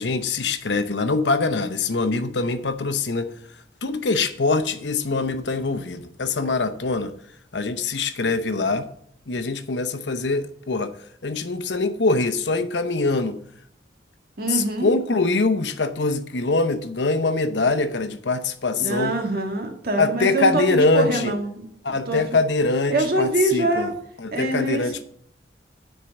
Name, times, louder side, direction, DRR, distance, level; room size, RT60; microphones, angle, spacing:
voice 1, 0.0-3.3 3.8-7.1 7.5-8.9 9.3-10.9 11.2-13.4 14.5-19.2 20.0-21.3 21.8-23.9 24.2-25.0, left 3 dB, 80° left, 0.8 m, -23 dB
voice 2, 14.4-14.9 18.8-21.7 22.1-22.2 22.9-23.9 24.3-24.8, right 2 dB, 55° right, 1.7 m, -24 dB
9.9 x 4.6 x 7.0 m
head